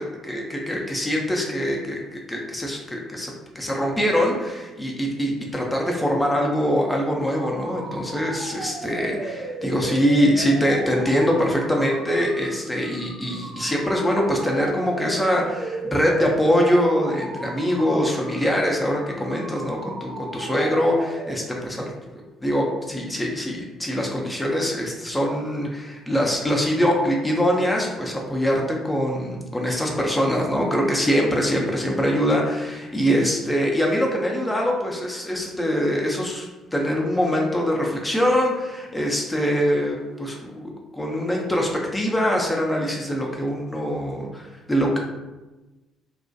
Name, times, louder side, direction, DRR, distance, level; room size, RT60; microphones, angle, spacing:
voice 1, 0.0-21.9 22.4-36.5 36.7-45.0, equal, 10° left, -1 dB, 0.5 m, -23 dB
sound 1, 7.0-21.7, right 2 dB, 80° right, 0.5 m, -36 dB
2.3 x 2.1 x 2.5 m, 1.1 s
figure-of-eight pair, 50°, 0 cm